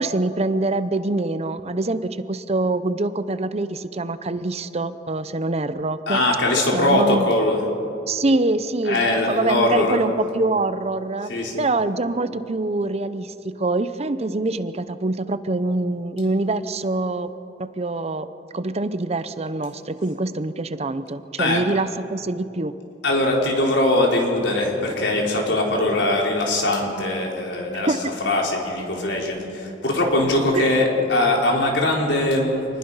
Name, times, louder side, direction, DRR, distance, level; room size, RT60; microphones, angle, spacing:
voice 1, 0.0-6.2 6.5-7.3 8.1-11.3 11.6-17.3 17.6-18.3 18.5-22.7 27.9-28.0 30.6-30.7, right 2 dB, 35° right, 13 dB, 0.7 m, -24 dB
voice 2, 6.1-7.7 8.9-10.0 11.3-11.6 21.4-21.6 23.0-27.9 28.2-32.6, left 2 dB, 85° left, -1 dB, 4.2 m, -21 dB
27.0 x 20.0 x 5.7 m, 2.8 s
head